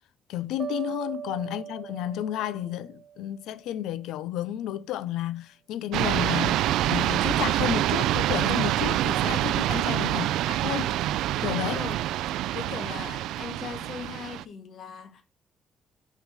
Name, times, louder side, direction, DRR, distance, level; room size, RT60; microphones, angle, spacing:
voice 1, 0.3-11.0 11.4-11.8, left 12 dB, 90° left, 0.5 m, -32 dB
sound 1, 0.6-3.7, right 9 dB, 55° right, 0.8 m, -39 dB
sound 2, 5.9-14.4, right 13 dB, 90° right, 0.3 m, -26 dB
voice 2, 11.6-12.1 12.5-15.2, left 6 dB, 65° left, 1.8 m, -39 dB
6.0 x 5.8 x 4.9 m
cardioid pair, 90°, 0 cm